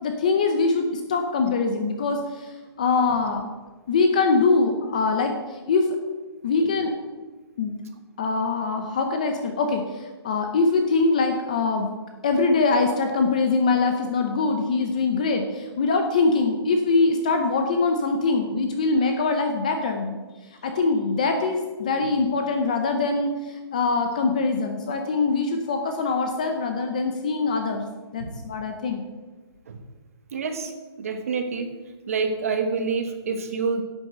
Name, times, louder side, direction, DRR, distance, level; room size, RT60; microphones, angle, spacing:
voice 1, 0.0-3.5 3.9-6.0 6.4-7.0 7.6-7.8 8.2-11.9 12.2-20.2 20.6-27.8 28.1-29.0, left 3 dB, 15° left, 5 dB, 0.6 m, -23 dB
voice 2, 30.3-30.7 31.0-31.7 32.1-33.8, right 5 dB, 35° right, 7 dB, 1.3 m, -27 dB
10.5 x 8.2 x 7.7 m, 1.3 s
hypercardioid pair, 180°, 14 cm